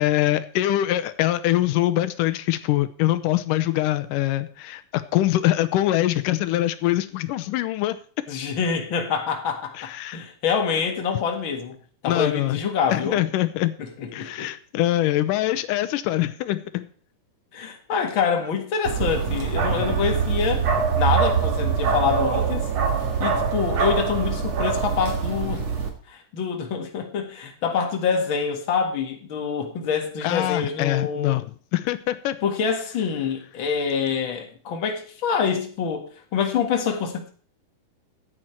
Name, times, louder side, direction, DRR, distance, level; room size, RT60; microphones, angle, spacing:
voice 1, 0.0-8.0 9.8-10.3 12.0-12.6 12.9-13.7 14.1-16.9 30.2-32.4, left 14 dB, 90° left, 13 dB, 2.3 m, -23 dB
voice 2, 8.3-11.8 12.0-13.2 13.8-14.5 17.5-20.6 21.0-22.7 23.2-25.7 26.1-31.4 32.4-37.3, left 6 dB, 45° left, 3 dB, 2.1 m, -26 dB
Bark, 18.9-25.9, right 6 dB, 55° right, 2.9 m, -24 dB
14.0 x 9.1 x 4.5 m, 0.43 s
omnidirectional pair, 3.7 m